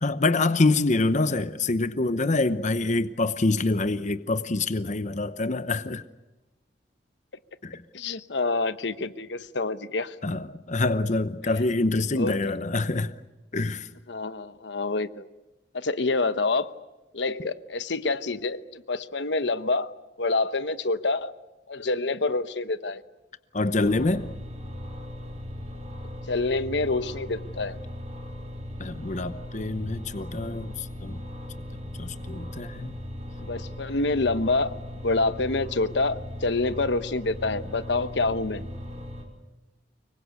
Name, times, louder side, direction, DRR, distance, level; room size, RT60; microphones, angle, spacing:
voice 1, 0.0-6.0 7.6-7.8 10.2-13.1 13.5-13.9 23.5-24.3 28.8-31.2 32.0-32.9, left 2 dB, 45° left, 12 dB, 0.9 m, -26 dB
voice 2, 7.9-10.1 12.2-12.4 14.1-15.3 15.7-16.7 17.1-19.9 20.2-21.3 21.7-23.0 26.3-27.8 33.4-34.8 35.0-38.7, left 3 dB, 75° left, 12 dB, 1.0 m, -27 dB
sound 1, 23.8-39.2, left 1 dB, 40° right, 5.2 m, -38 dB
25.0 x 23.0 x 8.2 m, 1.1 s
head